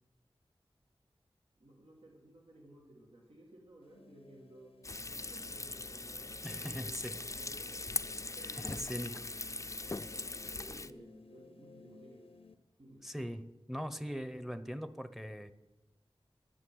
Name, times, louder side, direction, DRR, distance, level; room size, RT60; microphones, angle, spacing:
voice 1, 1.6-4.8 5.1-7.9 8.3-9.1 10.5-12.2 12.8-13.1, right 1 dB, 80° right, -2 dB, 2.0 m, -57 dB
sound 1, 3.8-12.6, left 4 dB, 85° left, 0.8 m, -60 dB
Frying (food), 4.8-10.9, left 3 dB, 30° left, 0.5 m, -41 dB
voice 2, 6.4-7.2 8.4-9.2 9.9-10.0 13.0-15.5, equal, ahead, 12 dB, 0.8 m, -41 dB
10.0 x 9.4 x 8.0 m, 1.0 s
wide cardioid pair, 55°, 10 cm